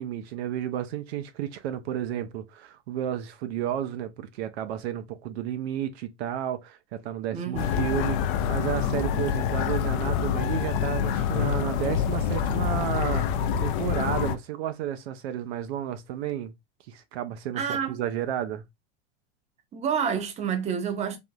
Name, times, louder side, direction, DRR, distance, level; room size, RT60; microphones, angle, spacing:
voice 1, 0.0-8.2 8.5-16.5 16.9-18.6, right 10 dB, 65° right, 0.6 m, -32 dB
voice 2, 7.3-7.8 17.6-18.0 19.7-21.2, right 7 dB, 20° right, 0.6 m, -29 dB
sound 1, 7.6-14.4, left 8 dB, 50° left, 0.5 m, -26 dB
3.4 x 2.5 x 2.2 m
hypercardioid pair, 120°, 34 cm